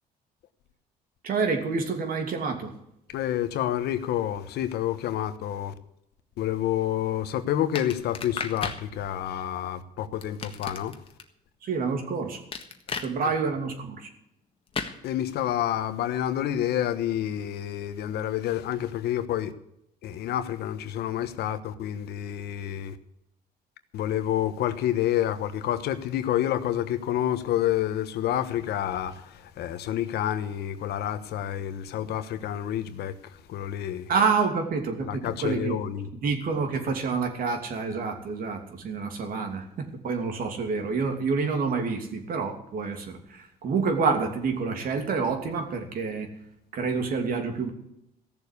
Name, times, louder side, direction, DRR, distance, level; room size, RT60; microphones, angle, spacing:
voice 1, 1.2-2.7 11.6-12.4 13.0-14.1 34.1-46.3 46.7-47.7, right 4 dB, 60° right, 2.8 m, -28 dB
voice 2, 3.1-5.7 6.4-10.9 15.0-19.5 20.0-23.0 23.9-33.1 33.5-34.1 35.0-36.1, left 11 dB, 75° left, 1.2 m, -28 dB
sound 1, 7.8-8.8 10.2-11.2 12.5-13.1 14.7-15.0, left 5 dB, 35° left, 1.6 m, -33 dB
15.5 x 7.2 x 8.4 m
cardioid pair, 110°, 17 cm